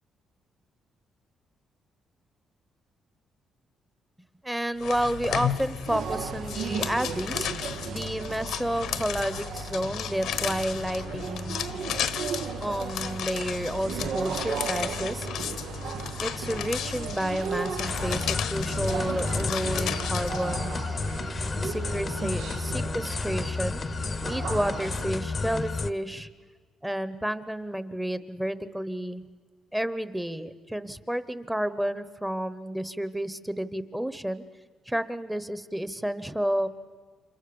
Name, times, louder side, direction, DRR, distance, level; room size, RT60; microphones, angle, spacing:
voice 1, 4.4-11.6 12.6-15.3 16.2-20.8 21.6-23.8 24.2-26.3 26.8-29.2 29.7-34.4 34.9-36.7, equal, 5° right, 13 dB, 1.0 m, -31 dB
sound 1, 4.8-20.6, left 9 dB, 85° left, 1.3 m, -34 dB
sound 2, 5.9-25.1, right 7 dB, 75° right, 0.8 m, -36 dB
sound 3, 17.8-25.9, left 4 dB, 35° left, 0.8 m, -31 dB
29.5 x 26.5 x 7.1 m, 1.5 s
cardioid pair, 115°, 0 cm